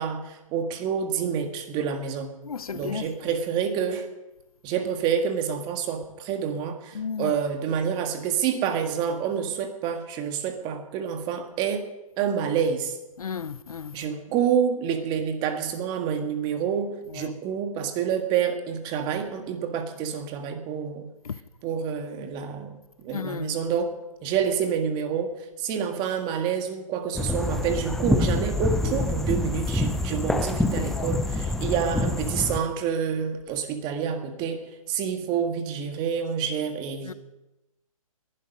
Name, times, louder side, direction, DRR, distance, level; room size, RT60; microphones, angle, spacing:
voice 1, 0.0-2.3 2.7-4.1 4.6-13.0 13.9-21.1 21.6-24.0 24.2-37.1, right 7 dB, 25° right, 1.7 m, -28 dB
voice 2, 2.4-3.1 6.9-7.3 13.2-14.1 17.1-17.3 21.2-21.3 23.1-23.6 28.8-29.0 30.9-31.2 37.0-37.1, left 6 dB, 80° left, 0.8 m, -34 dB
sound 1, 27.1-32.6, left 2 dB, ahead, 0.6 m, -26 dB
20.0 x 11.5 x 5.3 m
hypercardioid pair, 145°, 18 cm